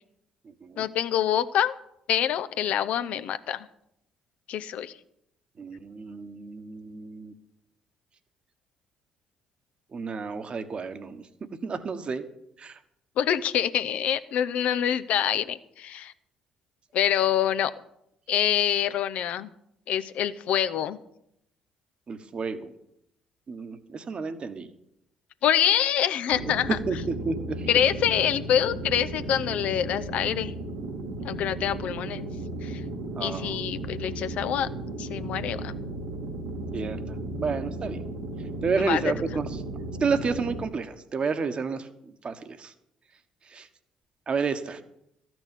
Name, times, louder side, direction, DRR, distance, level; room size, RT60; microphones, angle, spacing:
voice 1, 0.8-1.7 2.1-3.7 4.5-4.9 13.2-16.1 16.9-17.7 18.3-19.5 19.9-21.0 25.4-26.8 27.7-30.5 31.2-32.3 32.6-32.8 33.2-34.7 35.0-35.7 38.8-39.1, left 10 dB, 65° left, 12 dB, 0.7 m, -26 dB
voice 2, 5.6-7.3 9.9-11.2 11.6-12.2 12.6-12.8 22.1-22.7 23.5-24.7 26.4-26.5 26.9-27.0 27.2-27.7 33.2-33.6 36.7-38.0 38.6-39.5 40.0-41.9 42.2-42.7 43.5-43.7 44.3-44.8, right 5 dB, 45° right, 9 dB, 1.3 m, -30 dB
sound 1, 26.3-40.6, right 1 dB, 85° right, 2.0 m, -35 dB
13.5 x 6.2 x 9.1 m, 0.78 s
hypercardioid pair, 50°, 3 cm